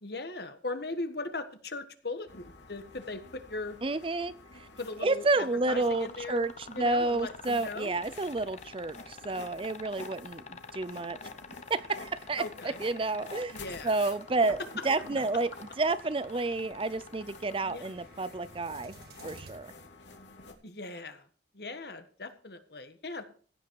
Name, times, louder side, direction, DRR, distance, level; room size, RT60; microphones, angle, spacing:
voice 1, 0.0-3.8 4.8-8.0 12.4-12.8 13.5-13.9 14.4-14.8 17.6-17.9 20.6-21.3 21.5-23.2, left 3 dB, 55° left, 9 dB, 1.6 m, -39 dB
sound 1, 2.3-20.5, left 3 dB, 75° left, 2.5 m, -50 dB
voice 2, 3.8-4.7 5.0-11.2 11.7-14.6 14.8-19.0 19.2-19.7, right 3 dB, 30° right, 16 dB, 0.5 m, -30 dB
sound 2, 5.7-17.9 19.5-19.6, left 4 dB, 35° left, 0.8 m, -46 dB
sound 3, 12.1-19.5, right 3 dB, 55° right, 1.9 m, -57 dB
16.0 x 8.5 x 4.7 m, 0.43 s
head